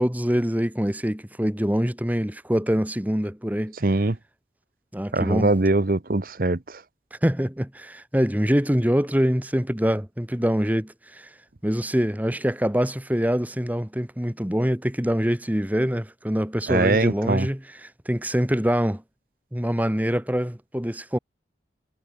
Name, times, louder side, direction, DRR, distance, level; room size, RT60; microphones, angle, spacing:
voice 1, 0.0-3.7 4.9-5.5 7.2-11.3 11.6-19.0 19.5-21.2, equal, 10° right, 1.3 m, -24 dB
voice 2, 3.8-4.2 5.1-6.8 16.7-17.5, right 2 dB, 50° right, 1.0 m, -22 dB
head